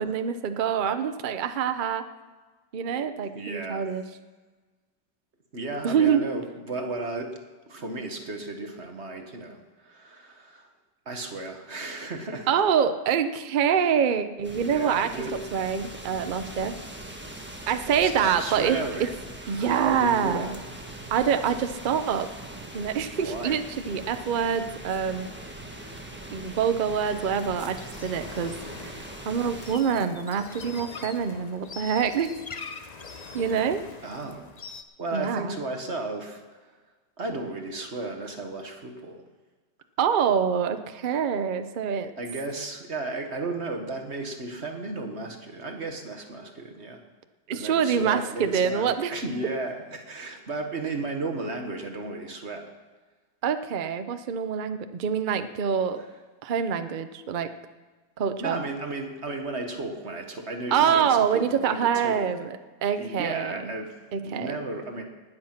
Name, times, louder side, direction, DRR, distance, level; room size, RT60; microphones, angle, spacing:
voice 1, 0.0-2.0 2.7-4.0 5.8-6.2 12.5-15.1 15.5-16.8 17.7-18.8 19.5-20.5 21.1-22.3 22.7-23.6 23.9-25.3 26.3-28.5 28.8-32.3 33.3-33.8 35.1-35.5 40.0-42.1 47.5-49.1 53.4-56.0 56.4-57.5 58.2-58.6 60.7-63.7 64.1-64.6, right 7 dB, 65° right, 9 dB, 0.5 m, -25 dB
voice 2, 3.3-3.9 5.5-7.4 7.7-10.7 11.0-12.5 14.5-15.4 17.9-19.1 19.4-20.6 23.2-23.6 34.0-34.5 35.0-36.7 37.2-39.2 42.2-47.0 47.5-52.7 56.0-56.1 58.4-62.3 63.0-65.0, right 2 dB, 40° right, 4 dB, 1.5 m, -34 dB
sound 1, 14.4-29.8, right 1 dB, 5° right, 1.2 m, -41 dB
sound 2, 26.9-34.8, left 4 dB, 60° left, 0.4 m, -43 dB
19.5 x 8.2 x 5.9 m, 1.3 s
omnidirectional pair, 1.9 m